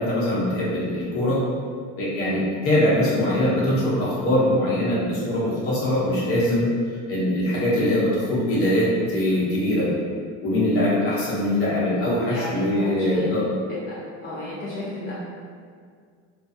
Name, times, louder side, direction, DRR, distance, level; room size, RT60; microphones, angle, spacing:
voice 1, 0.0-1.4 2.0-6.7 7.1-9.9 10.4-13.4, left 1 dB, 45° left, -7 dB, 0.9 m, -22 dB
voice 2, 10.5-10.8 12.3-13.3 13.9-14.0 14.2-15.1, left 1 dB, 30° left, -10 dB, 0.5 m, -33 dB
2.3 x 2.3 x 2.6 m, 2.1 s
cardioid pair, 145°, 31 cm